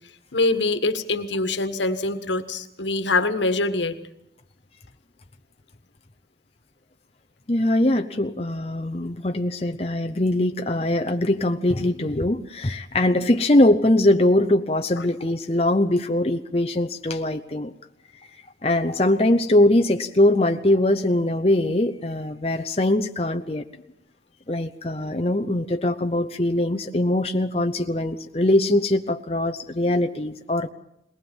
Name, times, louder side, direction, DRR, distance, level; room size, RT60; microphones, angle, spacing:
voice 1, 0.3-3.9 15.0-15.1, left 2 dB, 85° left, 9 dB, 1.6 m, -24 dB
voice 2, 7.5-17.7 18.6-23.6 24.5-30.7, left 1 dB, 35° left, 5 dB, 0.8 m, -22 dB
22.0 x 19.0 x 7.3 m, 0.82 s
head